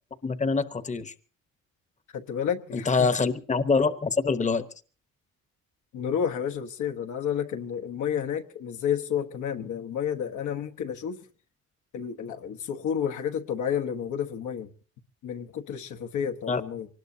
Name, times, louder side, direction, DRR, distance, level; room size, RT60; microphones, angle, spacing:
voice 1, 0.2-1.1 2.7-4.7 16.5-16.6, left 4 dB, 25° left, 1.0 m, -25 dB
voice 2, 2.1-3.1 5.9-11.2 11.9-14.7 15.2-16.9, left 8 dB, 75° left, 1.2 m, -30 dB
24.0 x 19.5 x 2.8 m
cardioid pair, 90°, 30 cm